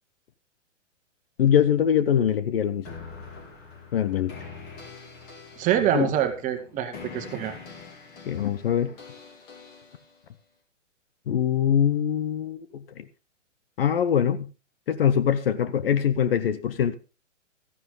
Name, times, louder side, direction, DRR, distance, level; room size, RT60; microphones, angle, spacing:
voice 1, 1.4-2.8 3.9-4.3 5.9-6.1 8.3-8.9 11.3-13.1 13.8-14.5 14.9-16.9, left 9 dB, 50° left, 1.0 m, -23 dB
sound 1, 2.9-10.2, left 4 dB, 25° left, 3.9 m, -44 dB
voice 2, 5.6-7.6, right 10 dB, 20° right, 1.6 m, -25 dB
14.0 x 11.0 x 3.8 m
figure-of-eight pair, 125°, 37 cm